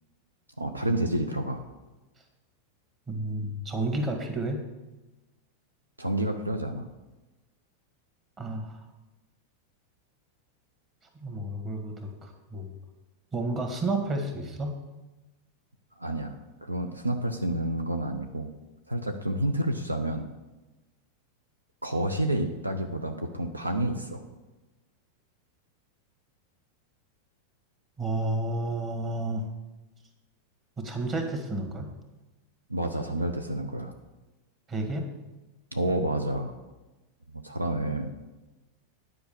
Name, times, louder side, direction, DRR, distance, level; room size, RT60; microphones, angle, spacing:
voice 1, 0.6-1.6 6.0-6.9 16.0-16.3 16.6-18.5 18.9-20.2 21.8-24.2 32.7-33.9 35.7-36.5 37.3-38.1, right 1 dB, 80° right, 6 dB, 0.7 m, -29 dB
voice 2, 3.1-4.6 8.4-8.8 11.2-12.7 13.3-14.8 28.0-29.4 30.8-31.9 34.7-35.1, right 2 dB, 25° right, 4 dB, 1.8 m, -31 dB
10.0 x 5.3 x 6.9 m, 1.1 s
figure-of-eight pair, 90°, 0 cm